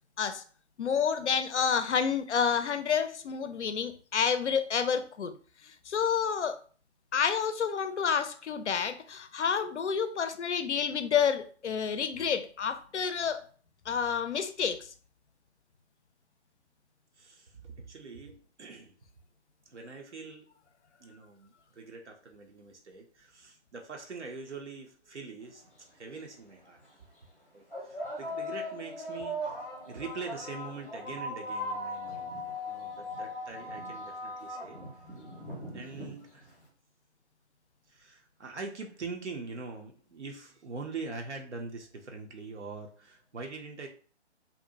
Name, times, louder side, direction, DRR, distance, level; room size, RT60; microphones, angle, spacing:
voice 1, 0.8-5.3 5.6-6.6 7.1-13.5 13.9-14.9, left 7 dB, 75° left, 10 dB, 0.5 m, -29 dB
voice 2, 17.2-18.9 19.7-20.5 21.0-26.8 27.5-29.6 29.9-32.4 32.7-34.8 35.7-36.5 37.9-43.9, right 4 dB, 80° right, 2 dB, 0.6 m, -43 dB
sound 1, 25.6-25.7 26.6-26.8 27.7-36.6, left 1 dB, 5° left, 0.5 m, -39 dB
2.6 x 2.1 x 2.6 m, 0.41 s
figure-of-eight pair, 140°, 35 cm